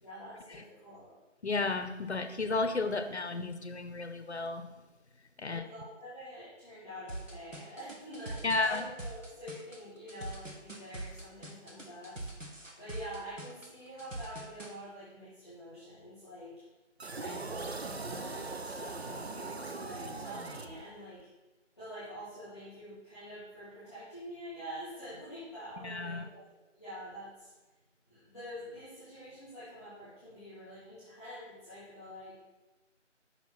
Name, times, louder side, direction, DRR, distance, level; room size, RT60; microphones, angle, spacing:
voice 1, 0.0-1.1 5.5-12.2 12.8-16.5 17.2-18.8 19.2-21.3 21.8-27.5 28.1-32.4, equal, ahead, -15 dB, 1.7 m, -46 dB
voice 2, 1.4-4.7 5.4-5.6 8.4-8.8 25.8-26.2, left 3 dB, 60° left, 9 dB, 0.7 m, -32 dB
sound 1, 7.1-14.7, right 2 dB, 85° right, 1.5 m, -43 dB
sound 2, 17.0-21.2, right 3 dB, 55° right, 0.5 m, -40 dB
5.7 x 4.3 x 5.9 m, 1.1 s
figure-of-eight pair, 170°, 37 cm